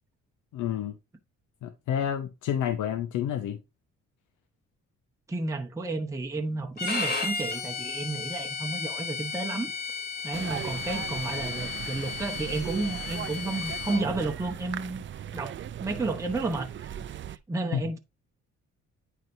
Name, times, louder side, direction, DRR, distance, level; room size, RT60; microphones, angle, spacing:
voice 1, 0.5-0.9 1.6-3.6 17.7-17.8, left 9 dB, 80° left, 0.7 m, -29 dB
voice 2, 5.3-9.7 10.2-15.0 15.3-18.0, right 2 dB, 10° right, 0.8 m, -32 dB
Bowed string instrument, 6.8-14.0, left 5 dB, 30° left, 2.2 m, -34 dB
sound 1, 10.3-17.4, right 10 dB, 40° right, 0.4 m, -38 dB
9.3 x 4.6 x 2.6 m
cardioid pair, 90°, 30 cm